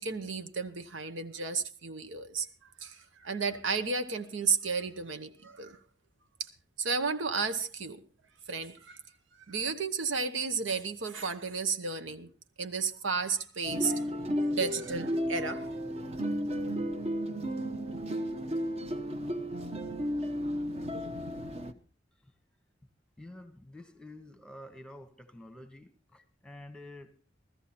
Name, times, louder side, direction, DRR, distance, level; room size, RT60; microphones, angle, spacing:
voice 1, 0.0-2.5 2.8-5.8 6.4-6.5 6.8-8.0 8.5-9.0 9.5-12.3 12.6-14.1 14.5-16.0, right 5 dB, 90° right, 1.2 m, -33 dB
sound 1, 13.6-21.7, equal, 35° right, 0.9 m, -33 dB
voice 2, 23.2-27.2, left 1 dB, 5° left, 1.1 m, -49 dB
16.0 x 13.5 x 4.3 m
head